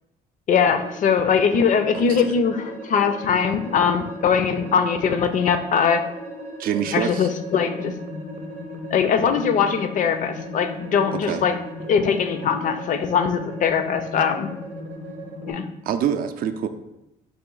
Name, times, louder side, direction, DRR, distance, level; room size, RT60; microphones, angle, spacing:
voice 1, 0.5-6.0 6.9-7.9 8.9-11.6 11.9-14.5 15.5-15.6, left 6 dB, 50° left, 9 dB, 0.4 m, -21 dB
sound 1, 0.5-15.5, right 2 dB, 40° right, 0.7 m, -38 dB
voice 2, 1.9-2.4 6.6-7.3 11.1-11.4 15.8-16.7, right 8 dB, 60° right, 9 dB, 0.4 m, -26 dB
sound 2, 6.8-15.7, left 4 dB, 80° left, 0.9 m, -38 dB
4.0 x 2.5 x 3.8 m, 0.88 s
cardioid pair, 110°, 17 cm